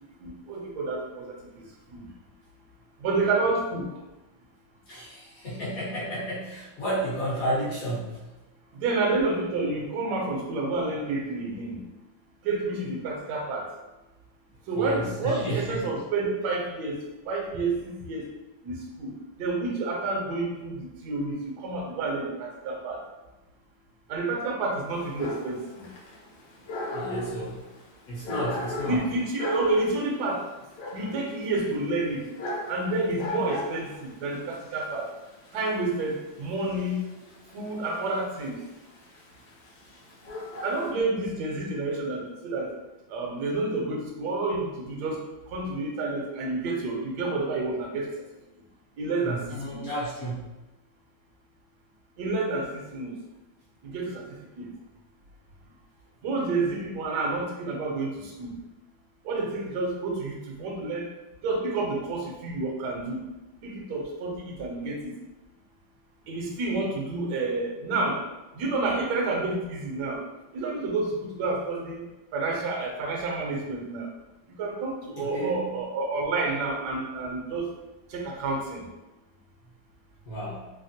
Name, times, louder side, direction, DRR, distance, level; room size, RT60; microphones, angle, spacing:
voice 1, 0.2-2.0 3.0-3.9 8.7-11.8 12.4-13.7 14.7-17.0 17.3-18.3 18.6-19.1 19.4-23.0 24.1-25.8 28.8-30.4 30.9-32.2 32.7-35.1 35.5-37.0 37.5-38.6 40.6-42.7 43.1-45.2 45.5-48.1 49.0-49.4 49.7-49.8 52.2-53.2 53.8-54.2 54.6-54.7 56.2-58.5 59.2-61.1 61.4-63.2 63.6-65.1 66.3-68.2 68.5-70.2 70.5-72.1 72.3-74.1 74.6-77.7 78.1-78.8, right 3 dB, 70° right, -1 dB, 1.1 m, -29 dB
voice 2, 4.9-8.3 14.7-15.8 26.9-27.6 28.1-29.0 49.2-50.5 75.2-75.8 80.2-80.7, right 1 dB, 55° left, -9 dB, 1.1 m, -32 dB
Dog, 24.9-40.9, left 2 dB, 75° left, 1.3 m, -38 dB
3.3 x 2.1 x 2.6 m, 1.0 s
omnidirectional pair, 2.1 m